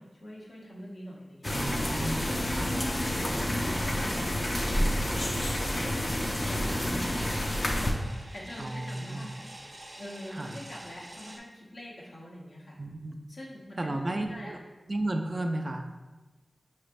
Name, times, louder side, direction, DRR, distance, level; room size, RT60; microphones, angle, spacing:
voice 1, 0.0-7.9 8.3-9.4 9.7-12.8 13.3-14.5, equal, 75° left, -4 dB, 1.0 m, -45 dB
sound 1, 1.4-7.9, left 1 dB, 35° left, 0.5 m, -29 dB
voice 2, 1.5-2.7 4.7-4.9 6.7-6.9 8.6-9.3 10.3-10.6 12.8-13.2 13.8-14.6 14.9-15.9, right 1 dB, 40° right, 5 dB, 0.4 m, -34 dB
sound 2, 6.4-11.4, right 1 dB, 65° right, 0.7 m, -47 dB
5.4 x 3.2 x 2.5 m, 1.2 s
wide cardioid pair, 75°, 0 cm